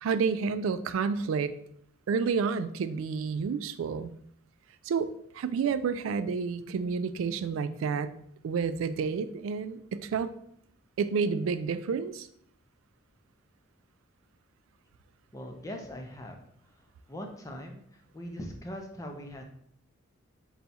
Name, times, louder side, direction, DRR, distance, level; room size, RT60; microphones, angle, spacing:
voice 1, 0.0-1.5 2.1-4.1 4.8-8.1 8.4-10.3 11.0-12.3, right 5 dB, 75° right, 12 dB, 0.3 m, -30 dB
voice 2, 15.3-16.4 17.1-19.4, equal, 15° left, 3 dB, 0.5 m, -41 dB
4.0 x 2.3 x 4.1 m, 0.68 s
head